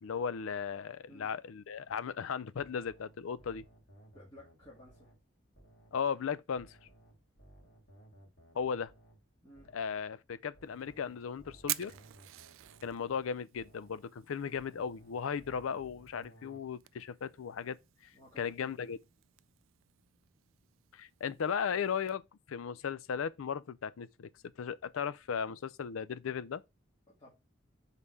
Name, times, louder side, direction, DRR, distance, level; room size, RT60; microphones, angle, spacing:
voice 1, 0.0-3.6 5.9-6.8 8.5-8.9 9.7-11.9 12.8-17.8 18.0-18.1 18.4-19.0 20.9-22.2 22.5-24.3 24.6-26.6, left 6 dB, 85° left, 0.4 m, -36 dB
sound 1, 2.5-6.1 6.5-10.1 10.5-14.1 14.5-16.6, right 1 dB, 55° left, 2.5 m, -60 dB
voice 2, 4.1-5.1 9.4-9.7 18.1-18.9 27.2-27.3, left 1 dB, 20° left, 2.3 m, -56 dB
Fire, 10.6-22.2, right 17 dB, 75° right, 0.3 m, -48 dB
5.4 x 4.1 x 4.6 m
head